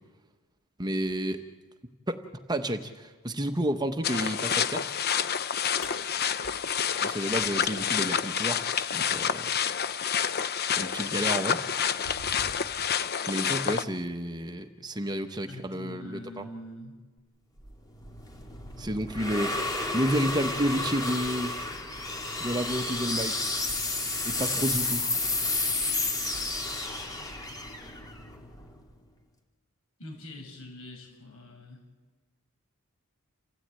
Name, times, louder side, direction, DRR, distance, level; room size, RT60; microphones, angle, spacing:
voice 1, 0.8-1.4 2.1-2.2 2.5-4.9 7.0-9.5 10.8-11.6 13.3-16.4 18.8-19.5 19.9-21.5 22.4-23.6 24.2-25.2, equal, 20° right, 7 dB, 1.0 m, -31 dB
sound 1, 4.0-13.8, left 8 dB, 45° left, 0.7 m, -28 dB
sound 2, 5.8-8.0 9.9-10.0 10.8-11.0 11.5-13.0, left 2 dB, 85° left, 3.2 m, -45 dB
voice 2, 15.5-16.9 30.0-31.8, left 1 dB, 65° left, 2 dB, 7.2 m, -44 dB
sound 3, 17.7-28.9, left 2 dB, 15° left, 2.7 m, -31 dB
28.5 x 16.5 x 8.9 m, 1.3 s
head